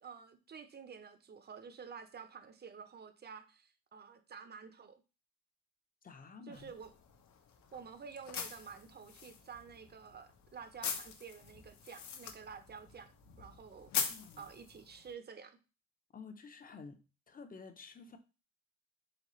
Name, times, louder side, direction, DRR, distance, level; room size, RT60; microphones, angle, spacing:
voice 1, 0.0-5.0 6.5-6.9 7.7-13.1 13.4-14.1 14.4-15.6, right 6 dB, 35° right, 0.6 m, -50 dB
voice 2, 6.0-6.7 14.1-14.5 16.1-18.2, left 4 dB, 30° left, 0.6 m, -51 dB
sound 1, 6.5-15.1, left 7 dB, 70° left, 0.8 m, -43 dB
4.1 x 3.2 x 3.0 m
cardioid pair, 90°, 30 cm